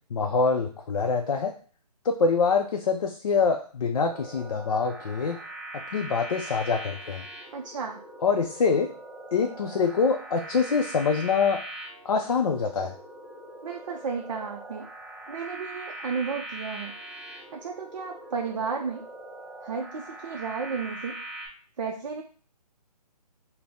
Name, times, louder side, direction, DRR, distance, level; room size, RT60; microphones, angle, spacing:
voice 1, 0.1-1.5 2.0-5.4 5.7-7.2 8.2-8.9 9.3-11.6 12.0-12.9, left 5 dB, 55° left, 3 dB, 0.4 m, -25 dB
sound 1, 4.0-21.5, right 1 dB, 5° right, 0.7 m, -42 dB
voice 2, 7.5-8.0 13.6-14.9 15.3-16.9 17.5-19.0 19.6-21.2 21.8-22.2, right 5 dB, 50° right, 1 dB, 0.5 m, -33 dB
4.0 x 2.0 x 3.4 m, 0.42 s
hypercardioid pair, 165°, 21 cm